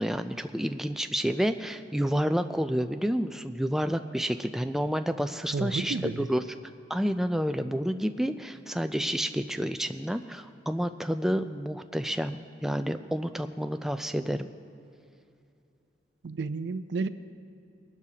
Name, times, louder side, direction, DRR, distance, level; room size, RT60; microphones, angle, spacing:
voice 1, 0.0-5.9 6.3-6.4 6.9-14.5, equal, ahead, 8 dB, 0.3 m, -29 dB
voice 2, 5.5-6.3 16.2-17.1, right 3 dB, 80° right, 12 dB, 0.5 m, -31 dB
21.5 x 12.0 x 2.8 m, 2.5 s
head